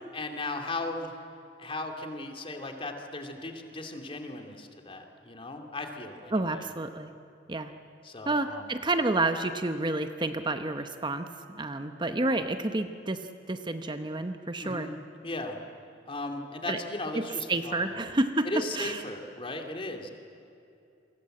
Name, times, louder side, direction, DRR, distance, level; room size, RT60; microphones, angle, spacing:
voice 1, 0.1-1.2 1.6-6.6 8.0-8.7 14.6-15.6 16.1-17.9 18.4-20.1, left 2 dB, 30° left, 4 dB, 2.5 m, -37 dB
voice 2, 6.3-7.1 7.5-7.7 8.3-11.3 11.6-14.9 16.7-16.8 17.1-18.5 18.8-19.0, right 2 dB, 25° right, 8 dB, 0.9 m, -29 dB
28.5 x 24.0 x 7.8 m, 2.7 s
head